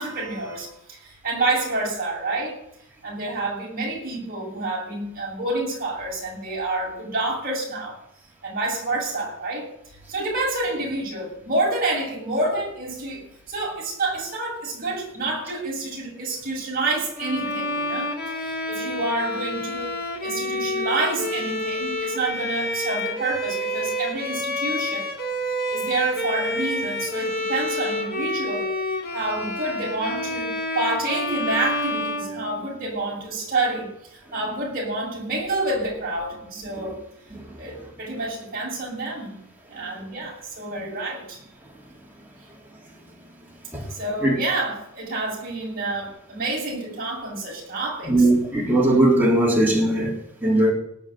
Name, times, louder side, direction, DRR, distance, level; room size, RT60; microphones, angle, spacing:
voice 1, 0.0-2.6 3.0-8.0 8.4-9.7 10.1-25.1 25.7-28.7 29.1-37.0 37.6-39.4 39.7-41.4 43.9-48.3, right 2 dB, 40° right, 7.6 m, -28 dB
Bowed string instrument, 17.2-33.0, left 1 dB, 45° left, 2.3 m, -28 dB
voice 2, 48.1-50.7, right 1 dB, 10° right, 3.7 m, -19 dB
18.5 x 6.3 x 9.5 m
head